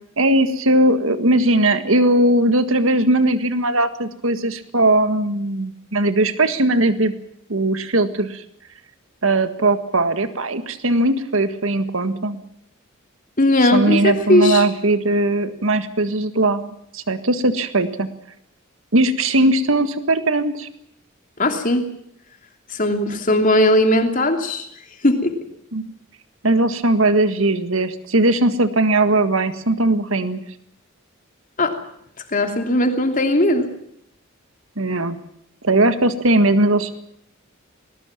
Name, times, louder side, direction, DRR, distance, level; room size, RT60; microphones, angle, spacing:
voice 1, 0.2-7.1 7.5-8.4 9.2-12.4 13.6-18.1 18.9-20.7 25.7-25.9 26.4-30.4 34.8-35.2 35.6-36.9, right 2 dB, 75° right, 10 dB, 1.7 m, -19 dB
voice 2, 13.4-14.6 21.4-21.9 22.7-24.7 25.0-25.3 31.6-31.8 32.3-33.7, left 1 dB, 40° left, 5 dB, 3.0 m, -18 dB
20.0 x 20.0 x 7.3 m, 0.74 s
head